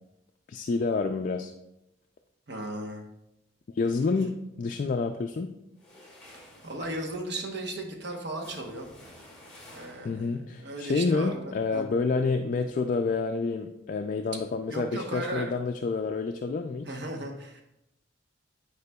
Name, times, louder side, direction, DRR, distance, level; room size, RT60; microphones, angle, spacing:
voice 1, 0.5-1.5 3.7-5.5 10.0-16.9, left 4 dB, 45° left, 5 dB, 0.3 m, -28 dB
voice 2, 2.5-3.1 6.6-8.9 9.7-11.8 14.7-15.5 16.9-17.6, right 1 dB, 60° right, 1 dB, 1.0 m, -36 dB
sound 1, 5.7-10.4, left 1 dB, 5° left, 1.9 m, -52 dB
9.4 x 4.8 x 2.3 m, 0.87 s
head